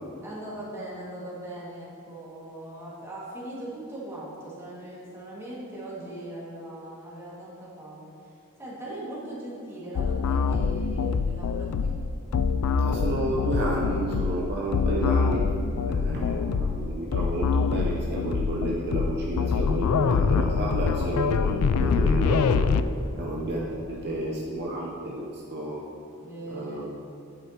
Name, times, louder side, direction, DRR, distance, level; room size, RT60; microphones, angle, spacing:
voice 1, 0.2-8.3 8.6-12.0 23.7-24.4 26.2-26.8, right 1 dB, 10° right, -7 dB, 1.9 m, -40 dB
sound 1, 10.0-22.8, left 5 dB, 75° left, 0.3 m, -25 dB
voice 2, 12.8-15.5 15.8-22.7 23.1-25.9 26.5-26.8, right 1 dB, 50° right, -3 dB, 0.8 m, -31 dB
9.3 x 8.0 x 2.9 m, 2.5 s
head